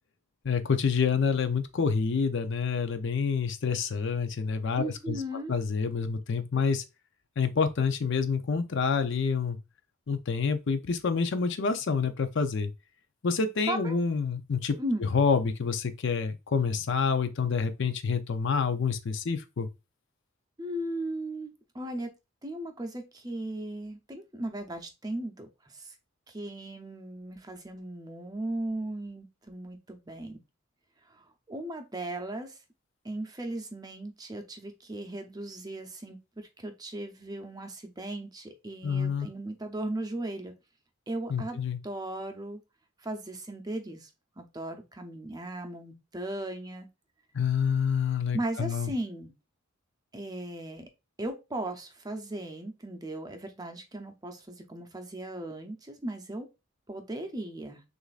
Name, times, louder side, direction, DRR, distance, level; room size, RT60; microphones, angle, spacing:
voice 1, 0.4-5.2 5.5-6.8 7.4-9.6 10.1-12.7 13.2-19.7 38.8-39.3 41.3-41.8 47.3-48.9, left 5 dB, 60° left, 0.5 m, -28 dB
voice 2, 4.8-5.5 13.7-14.0 14.8-15.1 20.6-22.1 22.4-25.5 25.7-25.9 26.3-30.4 31.1-31.2 31.5-32.6 33.0-40.5 41.1-42.6 43.0-44.1 44.4-46.9 48.3-49.3 50.1-50.9 51.2-56.5 56.9-57.8, right 1 dB, 20° right, 0.6 m, -37 dB
6.3 x 2.5 x 2.4 m
head